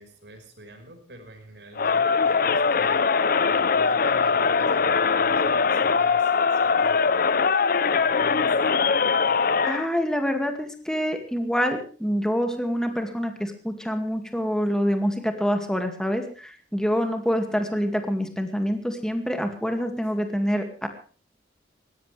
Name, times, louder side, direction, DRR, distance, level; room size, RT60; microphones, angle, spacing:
voice 1, 0.0-3.2 3.5-4.9 5.2-6.3 6.6-7.0 7.2-7.4 8.0-8.8, right 1 dB, 70° right, 5 dB, 5.3 m, -46 dB
Crowd, 1.8-9.9, left 5 dB, 55° left, 0.8 m, -21 dB
voice 2, 9.6-20.9, equal, 5° left, 5 dB, 2.3 m, -26 dB
20.5 x 17.5 x 3.4 m, 0.39 s
head